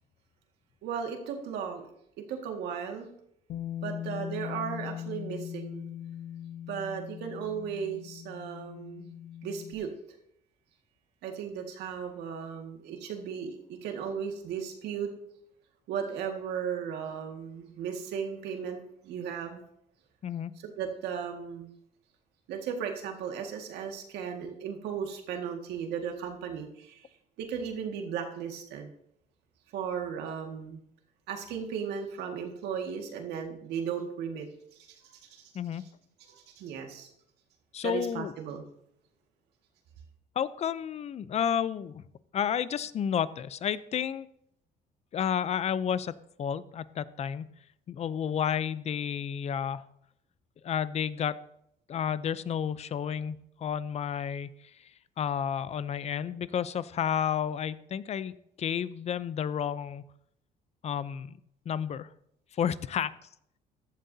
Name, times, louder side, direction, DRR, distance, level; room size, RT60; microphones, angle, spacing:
voice 1, 0.8-1.9 2.3-3.1 3.8-5.9 6.7-9.1 9.4-9.9 11.2-15.1 15.9-19.6 20.6-21.7 22.5-27.1 27.4-28.9 29.7-30.8 31.3-34.5 34.8-35.5 36.3-37.1 37.8-38.6, right 7 dB, 80° right, 3 dB, 1.9 m, -36 dB
Bass guitar, 3.5-9.7, left 10 dB, 70° left, 1.3 m, -40 dB
voice 2, 37.7-38.3 40.4-42.0 42.3-44.3 45.1-46.1 46.4-47.5 47.9-49.8 50.6-51.4 51.9-54.5 55.2-60.0 60.8-61.4 61.7-62.1 62.6-63.1, left 8 dB, 40° left, 17 dB, 0.5 m, -31 dB
15.0 x 11.5 x 2.7 m, 0.74 s
cardioid pair, 110°, 17 cm